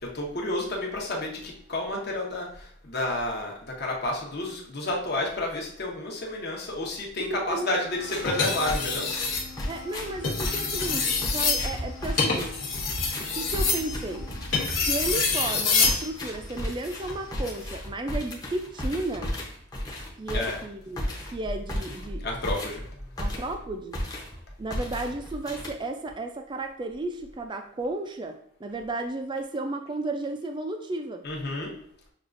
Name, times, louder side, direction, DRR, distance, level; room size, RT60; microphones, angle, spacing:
voice 1, 0.0-9.1 20.3-20.6 22.2-23.1 31.2-31.7, left 2 dB, 50° left, -1 dB, 0.9 m, -31 dB
voice 2, 7.3-7.8 9.7-12.6 13.2-14.3 14.9-19.3 20.2-22.3 23.2-24.0 24.6-31.2, right 2 dB, 25° right, 6 dB, 0.3 m, -33 dB
Wind instrument woodwind instrument, 7.6-15.2, left 2 dB, 75° right, 0.9 m, -47 dB
sound 1, 8.0-8.3 8.7-23.6 23.9-24.4 24.7-26.1, left 1 dB, 20° left, 0.7 m, -35 dB
sound 2, 8.3-9.5 10.1-16.0 17.5-17.8, left 4 dB, 85° left, 1.1 m, -26 dB
6.3 x 2.4 x 2.5 m, 0.66 s
head